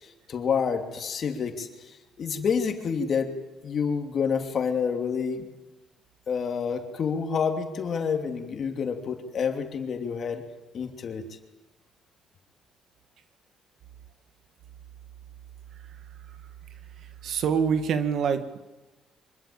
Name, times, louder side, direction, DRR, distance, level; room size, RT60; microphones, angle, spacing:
voice 1, 0.0-3.3 3.6-5.5 6.3-10.4 10.7-11.3, left 6 dB, 45° left, 5 dB, 3.0 m, -28 dB
voice 2, 17.2-18.6, right 6 dB, 60° right, 9 dB, 2.0 m, -25 dB
25.5 x 22.0 x 8.8 m, 1.1 s
cardioid pair, 135°, 0 cm